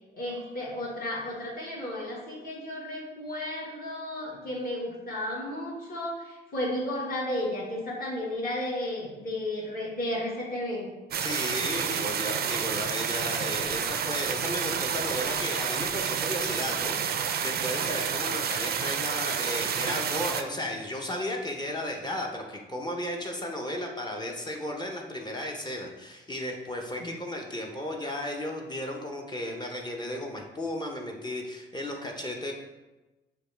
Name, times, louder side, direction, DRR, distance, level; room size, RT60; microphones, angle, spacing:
voice 1, 0.1-10.9 27.0-27.1, left 1 dB, 50° left, -5 dB, 1.5 m, -33 dB
sound 1, 11.1-20.4, right 8 dB, 50° right, 0.4 m, -29 dB
voice 2, 11.2-32.5, left 1 dB, 20° left, 1 dB, 0.6 m, -34 dB
6.6 x 2.3 x 3.3 m, 1.1 s
cardioid pair, 90°, 20 cm